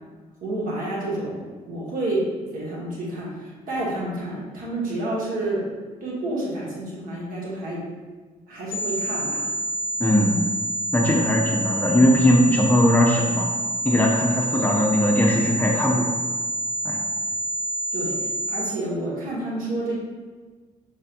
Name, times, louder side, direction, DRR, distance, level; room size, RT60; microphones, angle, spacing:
voice 1, 0.4-1.4 1.6-2.2 2.5-5.7 6.0-7.8 8.5-9.5 17.9-19.9, right 1 dB, 50° right, -5 dB, 1.4 m, -29 dB
sound 1, 8.7-18.7, right 1 dB, 50° left, 0.6 m, -27 dB
voice 2, 10.0-10.4 10.9-13.5 13.8-16.2 16.8-17.1, left 1 dB, 10° left, -2 dB, 0.7 m, -19 dB
5.5 x 3.5 x 2.5 m, 1.4 s
figure-of-eight pair, 45°, 18 cm